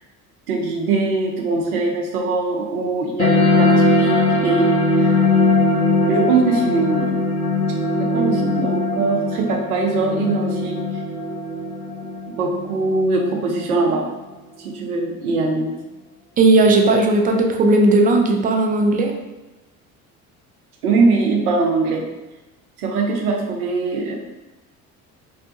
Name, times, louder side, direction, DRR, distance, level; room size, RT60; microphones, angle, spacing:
voice 1, 0.5-5.1 6.1-7.1 8.0-10.8 12.4-14.1 14.6-15.7 20.8-22.1 22.8-24.2, right 3 dB, 85° right, 1 dB, 0.6 m, -21 dB
sound 1, 3.2-14.2, left 2 dB, 75° left, 0.9 m, -20 dB
voice 2, 16.4-19.1, right 2 dB, 20° right, 2 dB, 0.3 m, -16 dB
2.6 x 2.1 x 2.7 m, 1.1 s
hypercardioid pair, 60°, 43 cm